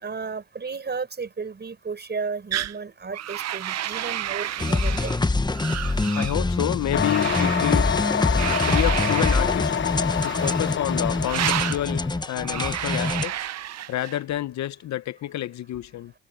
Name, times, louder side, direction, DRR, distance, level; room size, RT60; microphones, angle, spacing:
voice 1, 0.0-5.1, right 5 dB, 35° right, 5.8 m, -33 dB
sound 1, 2.5-2.8 3.1-5.2 5.5-6.4 7.0-7.8 8.4-9.5 10.1-10.7 11.2-11.8 12.4-14.2, right 12 dB, 60° right, 0.8 m, -30 dB
sound 2, 4.6-13.3, left 3 dB, 15° left, 1.0 m, -25 dB
voice 2, 6.2-7.9 8.6-9.7 10.2-13.5 13.9-16.1, left 13 dB, 65° left, 0.8 m, -29 dB
sound 3, 6.9-12.2, left 8 dB, 40° left, 1.0 m, -27 dB
cardioid pair, 90°, 30 cm